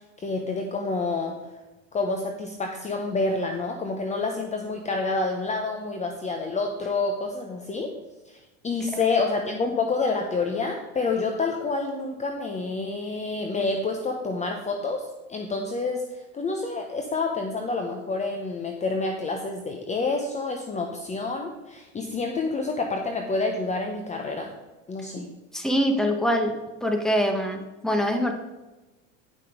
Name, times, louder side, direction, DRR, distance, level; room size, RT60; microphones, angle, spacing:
voice 1, 0.2-1.4 1.9-7.9 8.6-15.0 15.3-16.0 16.3-24.5 24.9-25.3, left 3 dB, 20° left, 3 dB, 0.9 m, -28 dB
voice 2, 25.5-26.5 26.8-28.3, equal, ahead, 4 dB, 1.2 m, -24 dB
10.0 x 5.8 x 5.0 m, 1.1 s
supercardioid pair, 125°, 37 cm